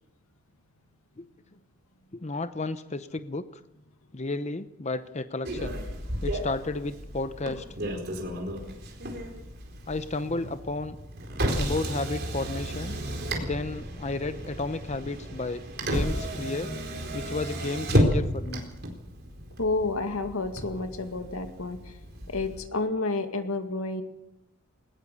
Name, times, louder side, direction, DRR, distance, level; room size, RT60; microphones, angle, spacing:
voice 1, 2.1-3.6 4.1-5.8 6.2-7.7 9.9-11.0 11.6-13.0 13.4-16.7 17.1-18.6, left 2 dB, 30° left, 11 dB, 0.7 m, -32 dB
Motor vehicle (road), 5.4-22.6, equal, 50° right, 4.3 m, -32 dB
voice 2, 19.6-22.0 22.3-24.0, left 3 dB, 90° left, 7 dB, 2.2 m, -30 dB
20.5 x 19.5 x 6.9 m, 0.86 s
head